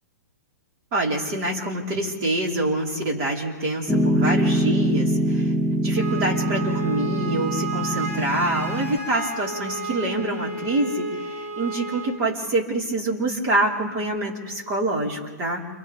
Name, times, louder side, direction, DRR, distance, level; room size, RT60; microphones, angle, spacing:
voice 1, 0.9-5.5 5.8-15.6, right 2 dB, 35° right, -3 dB, 4.6 m, -26 dB
Piano, 3.9-9.0, equal, ahead, 0.7 m, -23 dB
Wind instrument woodwind instrument, 5.9-12.2, right 2 dB, 55° right, 3.1 m, -32 dB
30.0 x 29.0 x 3.6 m, 1.4 s
hypercardioid pair, 145°, 9 cm